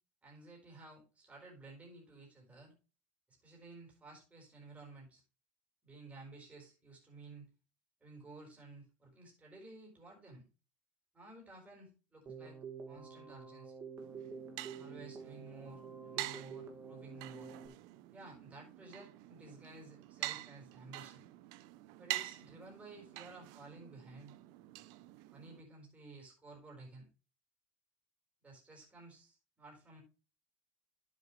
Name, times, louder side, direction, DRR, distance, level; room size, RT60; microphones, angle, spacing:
voice 1, 0.2-2.7 3.3-5.2 5.8-7.5 8.0-10.4 11.1-12.6 12.9-13.8 14.8-17.5 18.1-21.3 22.0-24.3 25.3-27.1 28.4-30.0, right 2 dB, 20° right, -2 dB, 4.3 m, -54 dB
Keyboard (musical), 12.3-17.7, right 5 dB, 40° right, 2.0 m, -48 dB
sound 1, 14.0-25.6, right 17 dB, 65° right, 0.6 m, -46 dB
11.0 x 7.6 x 3.1 m, 0.33 s
supercardioid pair, 95°, 7 cm